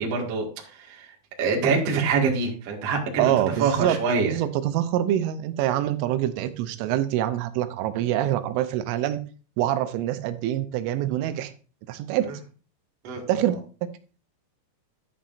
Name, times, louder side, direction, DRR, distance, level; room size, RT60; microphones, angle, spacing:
voice 1, 0.0-3.3 3.6-4.3 13.0-13.2, right 5 dB, 50° right, 0 dB, 2.0 m, -25 dB
voice 2, 3.2-4.0 4.2-9.2 9.6-11.5 11.9-12.3 13.3-13.6, right 12 dB, 85° right, 11 dB, 3.2 m, -25 dB
11.5 x 9.2 x 2.6 m, 0.37 s
omnidirectional pair, 5.6 m